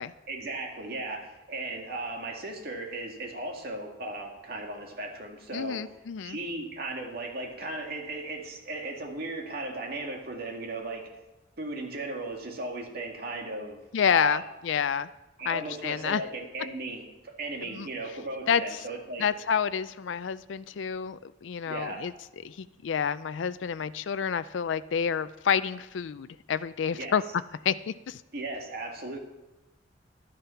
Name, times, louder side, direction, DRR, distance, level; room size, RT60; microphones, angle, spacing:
voice 1, 0.3-5.9 6.2-11.1 11.6-14.4 15.4-19.3 21.7-22.1 26.9-27.1 28.3-29.2, right 2 dB, 55° right, 1 dB, 2.2 m, -36 dB
voice 2, 5.5-6.4 13.9-15.1 15.5-16.2 17.7-17.9 18.5-18.8 19.2-22.1 22.4-27.2 27.6-28.2, left 7 dB, 85° left, 14 dB, 0.4 m, -29 dB
12.0 x 10.5 x 5.8 m, 0.99 s
head